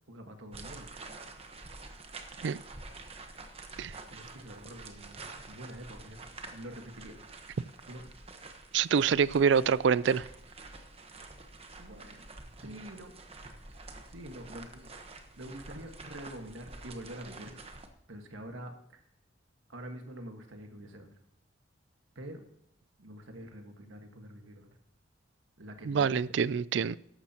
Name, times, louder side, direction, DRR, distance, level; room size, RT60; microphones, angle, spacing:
voice 1, 0.1-0.9 4.1-7.2 7.9-8.0 11.8-12.2 12.6-13.1 14.1-17.7 18.1-18.7 19.7-21.1 22.1-22.4 23.0-24.7 25.6-26.4, right 1 dB, 85° right, 1.6 m, -46 dB
sound 1, 0.5-17.9, right 3 dB, 30° right, 1.1 m, -48 dB
voice 2, 8.7-10.3 25.9-27.0, right 6 dB, 65° right, 0.4 m, -26 dB
13.5 x 11.5 x 2.9 m
head